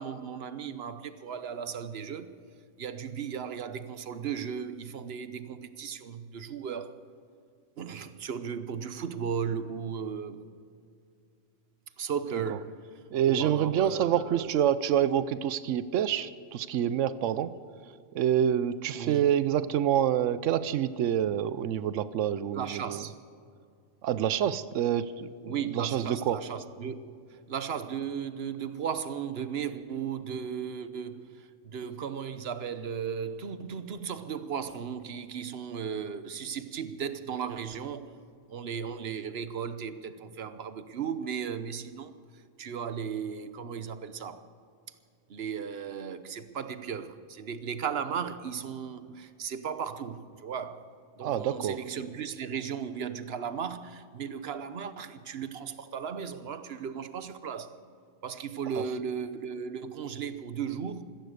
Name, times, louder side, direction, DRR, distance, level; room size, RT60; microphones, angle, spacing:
voice 1, 0.0-2.4 2.8-7.0 7.8-10.4 12.0-14.5 19.0-19.3 22.5-23.2 25.4-38.2 38.5-44.4 45.3-57.8 58.2-61.0, right 7 dB, 60° right, 1.1 m, -36 dB
voice 2, 13.1-17.5 18.1-23.0 24.0-25.3 25.7-26.4 51.2-51.8 58.8-58.9, right 10 dB, 85° right, 1.0 m, -27 dB
15.0 x 14.5 x 6.6 m
omnidirectional pair, 1.2 m